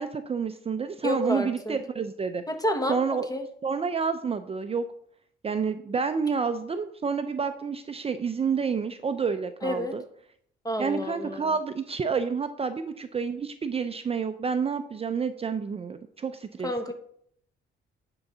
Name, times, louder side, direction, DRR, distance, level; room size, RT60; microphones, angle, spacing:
voice 1, 0.0-2.4 2.9-3.3 3.6-4.8 5.4-10.0 10.8-16.9, right 5 dB, 30° right, 9 dB, 0.5 m, -29 dB
voice 2, 1.0-1.8 2.5-3.0 3.3-3.4 9.6-10.0 10.6-11.5 16.6-16.9, equal, 20° left, 6 dB, 1.3 m, -29 dB
9.7 x 3.9 x 5.5 m, 0.66 s
cardioid pair, 90°, 20 cm